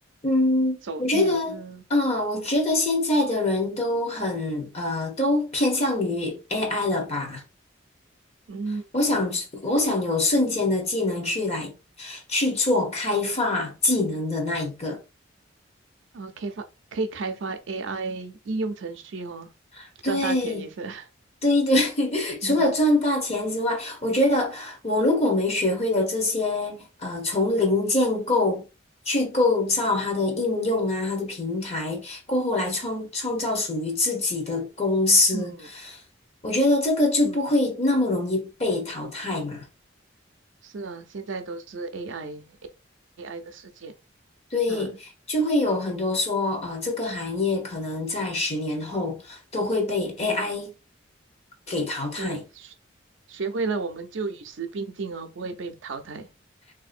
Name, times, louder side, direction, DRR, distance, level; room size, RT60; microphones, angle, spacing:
voice 1, 0.2-1.6 1.9-7.4 8.9-15.0 19.8-20.6 21.4-28.6 29.1-35.5 35.9-36.0 36.4-39.6 44.5-45.0 45.3-50.7 51.7-52.4, left 2 dB, 35° left, 0.9 m, -24 dB
voice 2, 0.9-1.8 8.5-8.8 16.1-16.6 16.9-19.5 20.0-21.1 22.4-22.7 35.3-35.7 37.2-37.4 40.6-42.6 43.2-43.9 44.7-44.9 50.2-50.5 52.2-52.7 53.3-56.3, right 3 dB, 70° right, 0.5 m, -33 dB
3.4 x 2.7 x 2.5 m
head